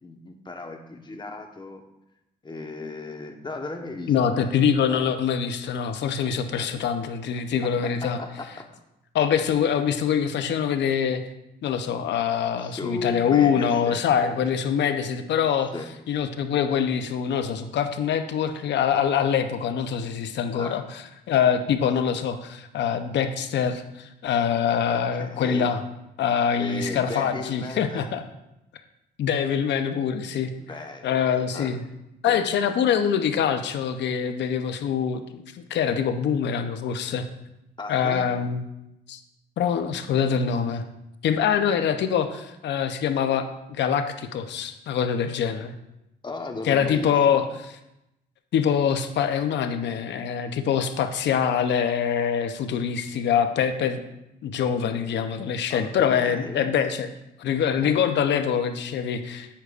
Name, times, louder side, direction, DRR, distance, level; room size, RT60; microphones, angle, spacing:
voice 1, 0.0-1.8 2.4-4.6 4.9-5.0 6.3-6.7 7.8-8.7 9.4-9.5 12.6-14.4 14.8-15.0 15.7-15.9 20.5-20.8 24.8-25.7 26.6-28.1 30.6-31.2 31.5-31.7 32.2-32.8 37.8-38.3 41.7-41.8 46.2-47.4 55.7-56.7 57.8-58.1, left 2 dB, 25° left, 4 dB, 1.2 m, -36 dB
voice 2, 4.1-8.2 9.1-11.2 11.6-15.7 16.1-25.8 26.2-28.2 29.2-30.5 31.0-31.8 32.2-37.2 37.9-38.6 39.1-39.2 39.6-40.8 41.2-45.7 46.6-47.4 48.5-54.0 54.4-57.1 57.4-59.5, left 7 dB, 75° left, 8 dB, 0.8 m, -24 dB
10.0 x 8.1 x 2.5 m, 0.88 s
cardioid pair, 80°, 18 cm